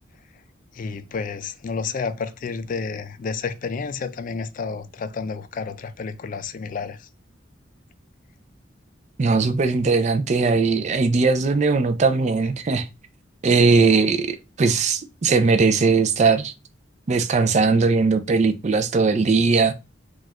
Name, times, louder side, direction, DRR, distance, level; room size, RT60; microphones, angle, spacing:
voice 1, 0.7-7.1, left 5 dB, 45° left, 0.3 m, -30 dB
voice 2, 9.2-12.9 13.4-16.5 17.1-19.7, right 4 dB, 35° right, 0.4 m, -19 dB
4.2 x 2.3 x 2.4 m
head